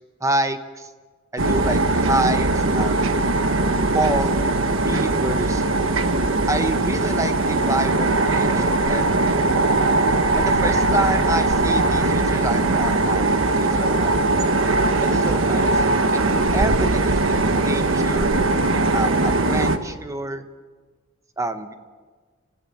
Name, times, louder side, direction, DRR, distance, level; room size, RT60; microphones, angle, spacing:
voice 1, 0.2-0.9 1.3-3.0 3.9-4.3 4.8-5.6 6.5-9.1 10.4-14.2 15.0-15.8 16.1-16.2 16.5-18.3 18.9-20.4 21.4-21.7, right 1 dB, 15° right, 8 dB, 1.1 m, -27 dB
sound 1, 1.4-19.8, right 2 dB, 70° right, 1.3 m, -20 dB
25.5 x 16.0 x 7.2 m, 1.5 s
head